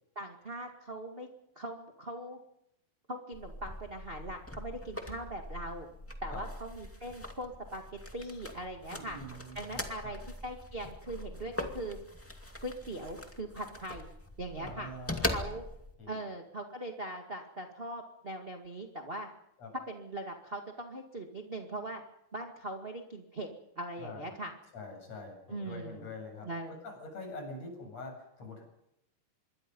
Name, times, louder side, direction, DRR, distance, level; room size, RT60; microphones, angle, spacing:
voice 1, 0.1-1.3 1.5-2.4 3.1-5.9 6.2-9.2 9.5-12.0 12.6-14.1 14.4-14.9 15.3-15.6 16.1-19.3 19.9-22.0 22.3-23.5 23.7-24.5 25.5-26.1 26.4-26.7, right 1 dB, 25° right, 2 dB, 1.1 m, -40 dB
sound 1, 3.3-15.9, left 1 dB, 10° left, 0.9 m, -41 dB
voice 2, 8.9-10.2 14.6-15.4 16.0-16.2 19.6-19.7 24.0-24.4 24.7-28.6, left 2 dB, 40° left, 3 dB, 8.7 m, -45 dB
26.5 x 23.0 x 5.4 m, 0.79 s
omnidirectional pair, 4.5 m